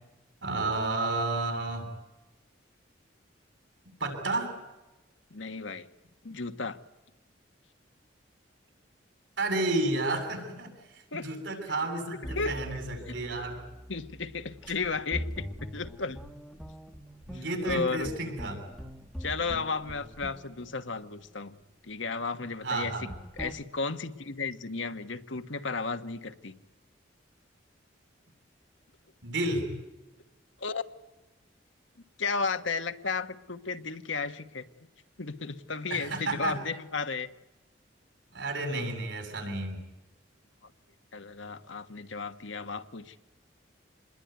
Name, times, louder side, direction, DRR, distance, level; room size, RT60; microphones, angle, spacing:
voice 1, 0.4-1.9 4.0-4.5 9.4-13.6 17.3-18.6 22.6-23.1 29.2-29.7 35.9-36.6 38.3-39.8, right 2 dB, 75° right, 4 dB, 7.8 m, -31 dB
voice 2, 5.3-5.9 6.2-6.8 11.1-11.3 12.3-12.5 13.1-13.2 13.9-16.2 17.3-18.1 19.2-21.6 21.8-23.1 23.4-26.5 30.6-30.8 32.2-34.6 35.2-37.3 38.7-38.9 40.6-40.7 41.1-43.2, left 4 dB, 85° left, 8 dB, 1.4 m, -34 dB
sound 1, 12.2-21.6 23.1-23.5, equal, ahead, 1.2 m, -42 dB
27.0 x 21.0 x 9.5 m, 1.1 s
head